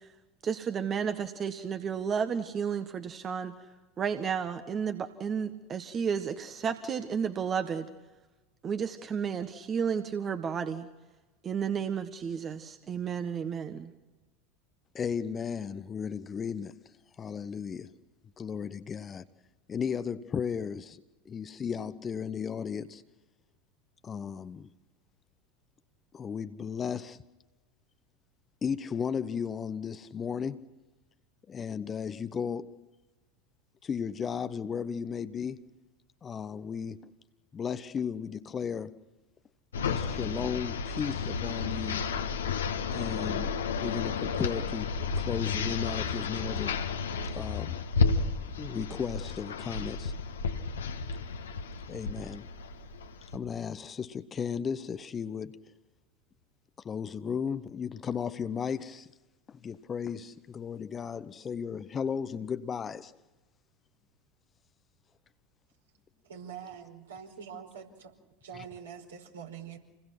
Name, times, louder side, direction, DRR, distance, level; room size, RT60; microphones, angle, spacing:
voice 1, 0.4-3.6 4.0-7.9 8.6-10.9 11.4-13.9, right 7 dB, 30° right, 1.5 m, -32 dB
voice 2, 14.9-16.8 17.2-17.9 18.4-19.2 19.7-21.0 21.2-23.0 24.0-24.7 26.1-27.2 28.6-30.7 31.5-32.7 33.8-35.6 36.2-37.1 37.5-39.0 39.8-42.1 42.9-46.8 47.3-47.8 48.6-50.1 51.9-52.5 53.3-55.6 56.8-59.1 59.5-63.1, left 7 dB, 25° left, 1.0 m, -35 dB
sound 1, 39.7-53.4, left 5 dB, 70° left, 1.8 m, -32 dB
voice 3, 66.3-68.1 68.4-69.8, right 7 dB, 70° right, 4.9 m, -44 dB
28.5 x 21.0 x 6.1 m
figure-of-eight pair, 80°, 0 cm